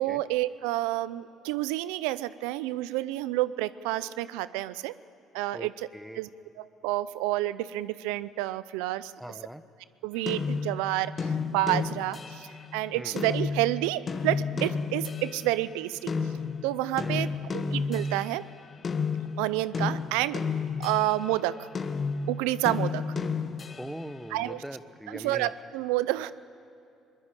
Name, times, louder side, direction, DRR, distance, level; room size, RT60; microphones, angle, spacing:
voice 1, 0.0-4.9 5.3-5.9 6.1-6.3 6.6-9.1 10.0-16.1 16.6-18.4 19.4-20.4 20.8-21.7 22.3-23.0 24.3-24.6 25.1-26.3, right 16 dB, 90° right, 16 dB, 0.5 m, -29 dB
voice 2, 5.5-6.2 9.2-9.6 12.9-13.2 17.0-17.7 23.7-25.5, equal, 5° right, 12 dB, 1.0 m, -41 dB
sound 1, 10.3-15.6 16.1-21.4 21.7-24.1, left 4 dB, 40° left, 1.1 m, -32 dB
21.5 x 19.0 x 8.9 m, 2.6 s
supercardioid pair, 80°, 0 cm